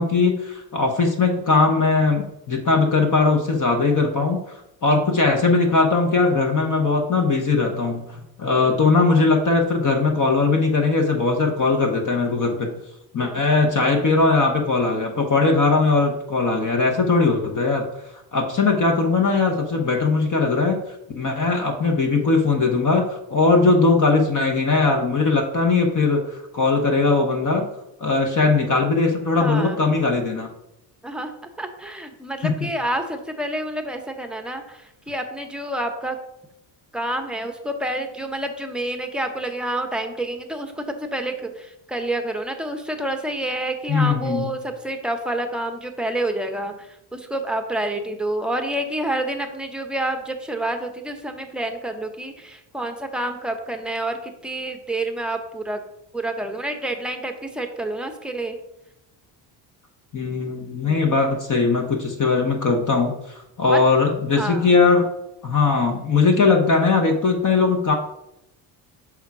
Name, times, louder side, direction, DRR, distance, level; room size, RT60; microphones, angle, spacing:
voice 1, 0.0-4.4 4.8-12.7 13.1-17.9 18.3-20.8 21.2-27.7 28.0-30.5 32.4-32.5 43.9-44.5 60.1-63.1 63.6-65.0 65.4-67.9, left 3 dB, 40° left, 3 dB, 1.0 m, -19 dB
voice 2, 8.5-8.8 13.2-13.4 29.4-29.8 31.0-36.2 36.9-40.8 41.1-46.7 47.1-55.8 56.1-58.6 60.8-61.2 63.7-63.8 64.3-64.8, right 1 dB, ahead, 5 dB, 0.8 m, -28 dB
5.8 x 3.5 x 4.7 m, 0.86 s
cardioid pair, 85°, 48 cm